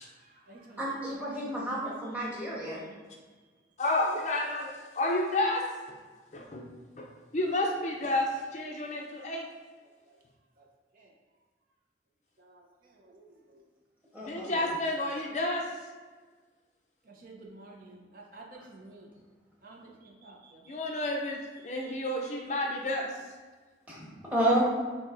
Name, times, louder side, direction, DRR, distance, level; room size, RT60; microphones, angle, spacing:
voice 1, 0.0-1.6 2.0-2.9 8.6-8.8 9.8-10.2 10.6-10.7 10.9-11.1 12.4-13.6 17.0-19.1 19.6-22.3, right 2 dB, 50° right, -1 dB, 0.6 m, -54 dB
voice 2, 0.8-2.8 14.1-14.7 23.9-24.6, right 1 dB, 10° right, -6 dB, 1.1 m, -31 dB
voice 3, 3.8-6.0 6.3-6.7 7.0-7.1 7.3-9.5 14.2-15.7 20.7-21.4 21.6-23.1, left 1 dB, 40° left, 0 dB, 0.5 m, -30 dB
7.2 x 2.7 x 2.5 m, 1.4 s
head